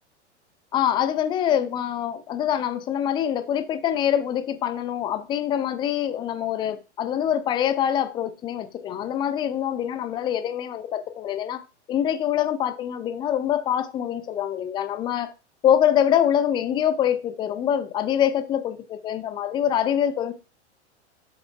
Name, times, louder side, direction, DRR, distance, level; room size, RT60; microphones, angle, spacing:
voice 1, 0.7-15.3 15.6-20.3, left 10 dB, 15° left, 0.4 m, -24 dB
7.6 x 7.2 x 2.2 m
figure-of-eight pair, 95°, 36 cm